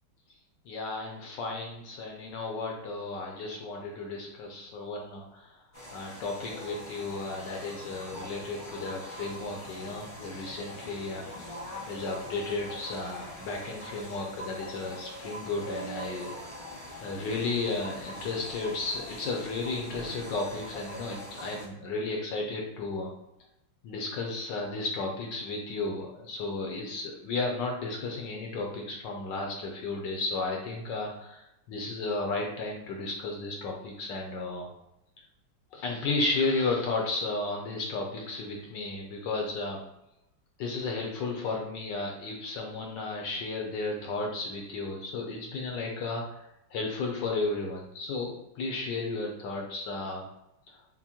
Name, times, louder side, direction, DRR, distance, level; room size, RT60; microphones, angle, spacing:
voice 1, 0.7-5.6 5.9-11.3 11.9-16.3 17.0-23.1 23.8-34.7 35.7-39.8 40.6-46.4 46.7-50.2, left 3 dB, 70° left, 0 dB, 1.1 m, -33 dB
sound 1, 5.7-21.7, equal, 55° left, 0.4 m, -43 dB
5.8 x 2.1 x 2.8 m, 0.84 s
omnidirectional pair, 2.3 m